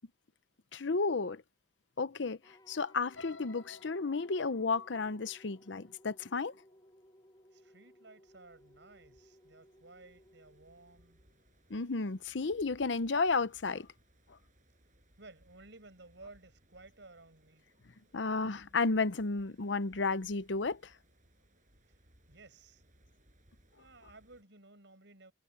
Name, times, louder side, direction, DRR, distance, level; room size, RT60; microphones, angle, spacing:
voice 1, 0.7-1.4 2.0-2.4 2.7-6.5 11.7-13.9 18.1-20.9, left 4 dB, 70° left, 0.8 m, -32 dB
sound 1, 2.4-11.7, equal, 20° left, 4.2 m, -62 dB
sound 2, 3.1-7.1 7.6-7.9 8.2-8.3, left 4 dB, 90° left, 5.8 m, -55 dB
voice 2, 7.5-11.2 15.2-17.7 22.3-22.8 23.8-25.3, right 2 dB, 65° right, 7.1 m, -56 dB
sound 3, 8.3-24.4, right 1 dB, 40° right, 7.4 m, -67 dB
head